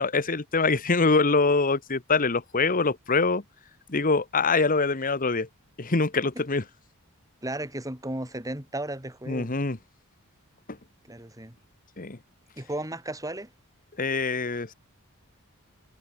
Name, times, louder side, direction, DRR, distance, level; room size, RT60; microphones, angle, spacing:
voice 1, 0.0-3.4 3.9-5.5 5.8-6.6 9.3-9.8 12.0-12.2 14.0-14.7, left 3 dB, 40° left, 1.3 m, -24 dB
voice 2, 7.4-9.6 11.0-11.6 12.6-13.5, right 1 dB, 15° right, 5.5 m, -34 dB
head